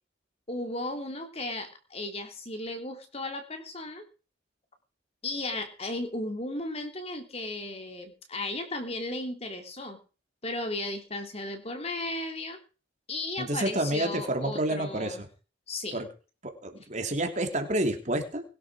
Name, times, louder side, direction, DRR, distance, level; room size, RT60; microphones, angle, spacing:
voice 1, 0.5-4.0 5.2-10.0 10.4-12.6 13.1-15.2 15.7-16.0, left 2 dB, 30° left, 6 dB, 3.3 m, -35 dB
voice 2, 13.4-15.3 15.9-16.1 16.4-18.4, right 1 dB, 35° right, 6 dB, 3.1 m, -29 dB
22.0 x 12.0 x 5.0 m, 0.36 s
head